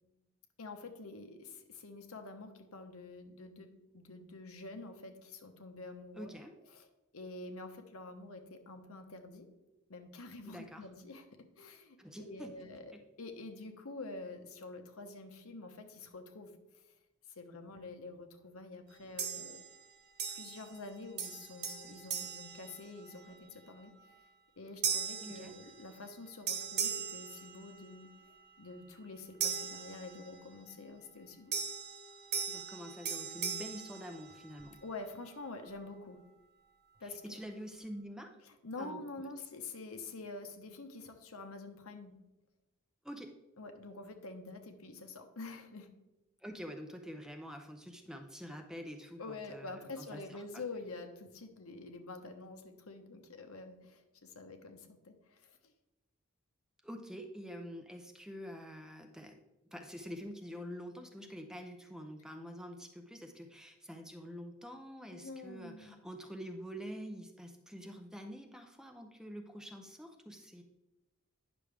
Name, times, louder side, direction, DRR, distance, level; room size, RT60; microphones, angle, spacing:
voice 1, 0.6-6.3 6.7-6.9 7.1-9.5 9.9-11.2 11.6-12.9 13.2-16.5 17.3-19.6 20.3-23.9 24.6-28.1 28.6-31.5 34.8-36.2 37.0-37.4 38.4-42.1 43.6-45.9 49.2-55.7 65.1-66.0, left 3 dB, 80° left, 5 dB, 1.0 m, -47 dB
voice 2, 6.2-6.5 10.4-10.9 12.0-12.7 25.2-25.5 32.5-34.8 37.0-38.4 38.8-39.3 43.0-43.3 46.4-50.4 56.8-59.4 59.7-70.6, equal, 5° right, 4 dB, 0.5 m, -46 dB
sound 1, 19.2-19.8 20.2-20.9 21.2-23.3 23.8-24.1 24.8-26.2 26.5-28.1 29.4-30.6 31.5-34.8, right 6 dB, 50° right, 1.1 m, -39 dB
9.7 x 6.2 x 3.5 m, 1.0 s
head